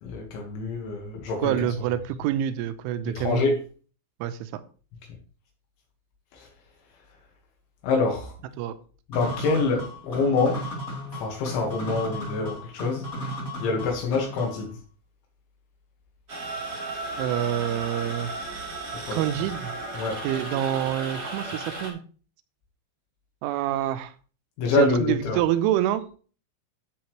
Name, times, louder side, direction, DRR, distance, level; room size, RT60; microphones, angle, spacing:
voice 1, 0.0-1.6 3.0-3.5 6.3-6.5 7.8-8.3 9.1-10.6 11.1-13.1 13.6-14.7 19.1-19.2 19.9-20.2 24.6-25.4, left 3 dB, 75° left, 1 dB, 3.8 m, -26 dB
voice 2, 1.4-3.4 4.2-4.6 8.6-8.7 17.2-18.3 19.1-19.7 20.2-22.0 23.4-24.1 24.7-26.0, right 11 dB, 85° right, 11 dB, 3.0 m, -27 dB
sound 1, 9.1-14.7, equal, 25° left, 2.2 m, -35 dB
sound 2, 16.3-21.9, right 2 dB, 30° right, 1.8 m, -35 dB
10.5 x 7.9 x 3.1 m, 0.38 s
omnidirectional pair, 5.7 m